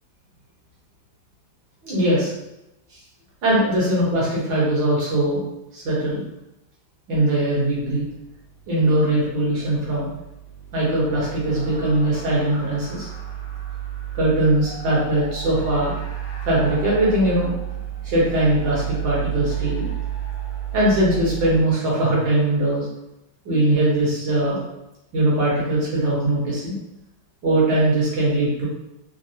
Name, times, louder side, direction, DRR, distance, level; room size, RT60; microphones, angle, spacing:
voice 1, 1.8-2.3 3.4-5.4 5.7-6.2 7.1-8.0 8.7-10.1 10.7-13.1 14.1-16.0 16.5-17.5 18.0-19.9 20.7-22.9 23.5-24.6 25.1-26.8 27.4-28.7, right 1 dB, 65° right, -6 dB, 1.9 m, -20 dB
sound 1, 7.6-21.6, right 10 dB, 60° left, 1.1 m, -32 dB
4.0 x 2.1 x 2.7 m, 0.89 s
omnidirectional pair, 2.2 m